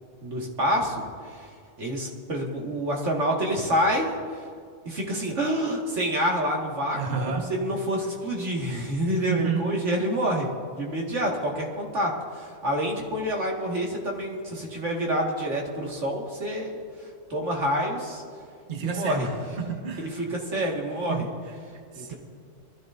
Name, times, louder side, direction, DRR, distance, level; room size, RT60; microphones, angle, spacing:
voice 1, 0.2-1.0 1.8-4.1 4.9-7.0 7.3-16.8 17.3-18.2 18.8-19.3 20.0-21.3 22.0-22.1, equal, 70° right, -2 dB, 2.2 m, -27 dB
voice 2, 6.9-7.5 9.3-9.8 18.7-20.2 20.5-20.7 21.1-21.3 21.9-22.1, right 6 dB, 45° right, 2 dB, 1.2 m, -30 dB
24.5 x 13.0 x 2.6 m, 2.2 s
omnidirectional pair, 1.3 m